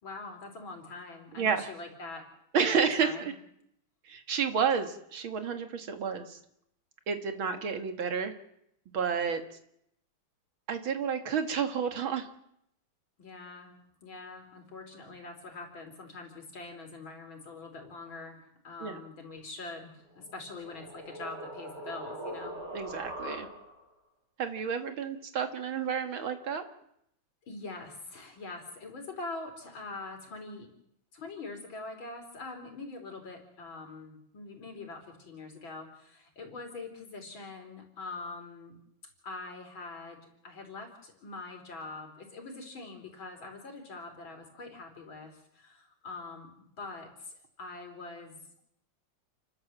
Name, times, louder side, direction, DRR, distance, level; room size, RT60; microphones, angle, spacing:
voice 1, 0.0-2.3 2.8-3.3 13.2-13.7 14.0-22.6 27.4-30.7 31.1-38.8 39.2-46.5 46.8-48.6, left 3 dB, 75° left, 4 dB, 4.6 m, -44 dB
voice 2, 1.4-1.7 2.5-3.3 4.1-6.4 7.1-8.3 8.9-9.4 10.7-12.3 18.8-19.0 22.7-23.5 24.4-26.6, right 6 dB, 85° right, 7 dB, 2.7 m, -30 dB
sound 1, 20.1-23.9, right 1 dB, 60° right, 7.0 m, -41 dB
29.5 x 12.5 x 7.5 m, 0.74 s
omnidirectional pair, 2.2 m